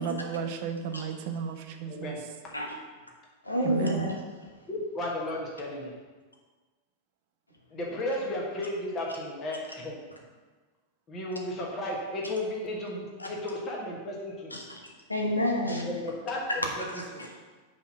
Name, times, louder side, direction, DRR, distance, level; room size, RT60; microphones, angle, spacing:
voice 1, 0.0-2.2 3.6-4.1, right 6 dB, 50° right, 6 dB, 0.6 m, -33 dB
voice 2, 1.9-2.2 4.7-5.9 7.7-10.0 11.1-14.6 15.8-16.8 17.1-17.2, left 1 dB, 25° left, -2 dB, 1.3 m, -34 dB
voice 3, 3.4-4.5 13.2-13.3 14.5-14.8 15.1-15.9 16.9-17.4, equal, 85° left, 0 dB, 1.1 m, -30 dB
5.5 x 4.2 x 6.0 m, 1.3 s
figure-of-eight pair, 90°, 0 cm